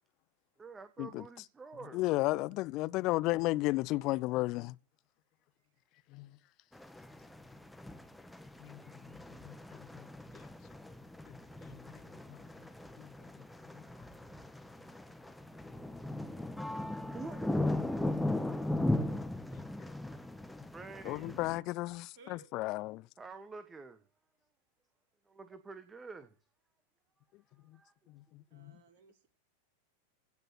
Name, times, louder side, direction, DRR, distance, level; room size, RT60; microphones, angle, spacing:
voice 1, 0.6-2.0 2.3-2.4 17.1-17.7 19.8-19.9 20.7-21.4 23.2-24.0 25.2-26.3 27.5-27.9, right 4 dB, 15° right, 1.5 m, -48 dB
voice 2, 1.9-4.7 6.1-6.3 8.6-8.8 9.4-9.5 9.9-10.0 11.7-11.8 12.3-12.4 13.0-13.1 18.5-18.6 19.5-19.6 21.1-23.0 28.5-28.7, left 19 dB, 40° left, 0.7 m, -33 dB
sound 1, 6.7-21.6, left 1 dB, 5° left, 1.5 m, -38 dB
voice 3, 22.1-22.5 28.5-29.3, right 4 dB, 45° right, 4.6 m, -59 dB
16.5 x 6.7 x 8.6 m
figure-of-eight pair, 90°, 0 cm